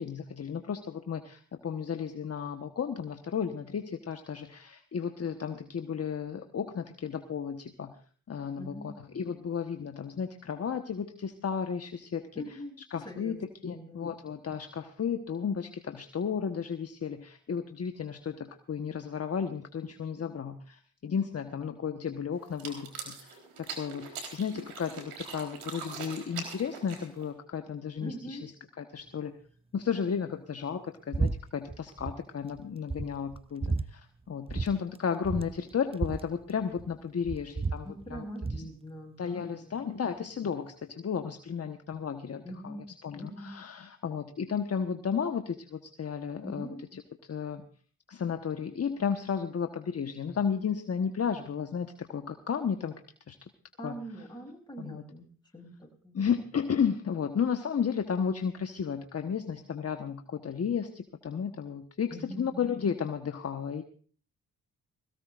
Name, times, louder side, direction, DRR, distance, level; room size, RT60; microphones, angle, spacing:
voice 1, 0.0-8.0 8.3-12.6 12.9-28.4 28.8-29.4 29.7-38.3 38.6-38.7 39.2-42.7 43.0-47.0 47.3-47.6 48.1-53.0 53.3-53.4 53.8-54.0 54.8-55.0 56.1-63.8, left 7 dB, 40° left, 7 dB, 1.3 m, -33 dB
voice 2, 8.6-9.0 12.3-12.8 13.0-13.3 13.6-14.3 28.0-28.5 37.8-39.7 42.4-42.9 43.2-43.6 46.4-46.9 53.8-55.3 55.5-56.2 62.1-62.6, equal, 10° left, 0 dB, 7.5 m, -43 dB
sound 1, 22.5-27.3, right 5 dB, 85° right, 4.0 m, -42 dB
sound 2, 31.1-31.4 31.6-32.2 32.5-32.6 32.9-33.9 34.5-34.7 34.9-35.0 35.2-36.9 37.2-38.7, right 3 dB, 15° right, 0.7 m, -32 dB
21.0 x 17.5 x 2.5 m, 0.42 s
supercardioid pair, 55°, 37 cm